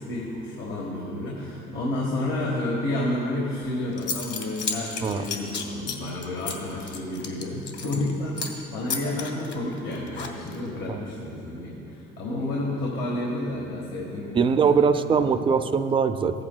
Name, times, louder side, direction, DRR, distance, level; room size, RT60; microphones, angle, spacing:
voice 1, 0.0-15.4, left 1 dB, 80° left, -4 dB, 1.4 m, -30 dB
Zipper (clothing) / Coin (dropping), 3.6-3.7 4.0-8.1 8.4-8.6 8.9-10.7, left 5 dB, 60° left, 1.2 m, -33 dB
voice 2, 14.3-16.4, right 6 dB, 25° right, 10 dB, 0.4 m, -22 dB
15.0 x 8.6 x 2.2 m, 2.7 s
cardioid pair, 90°, 20 cm